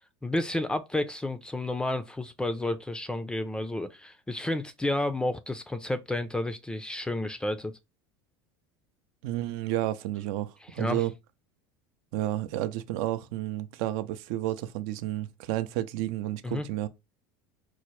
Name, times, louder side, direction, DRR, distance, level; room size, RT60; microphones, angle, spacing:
voice 1, 0.2-7.7 10.6-11.0 16.4-16.7, left 1 dB, 10° left, 0.4 m, -31 dB
voice 2, 9.2-11.1 12.1-16.9, right 14 dB, 65° right, 0.5 m, -31 dB
4.6 x 2.1 x 3.0 m
supercardioid pair, 105°, 11 cm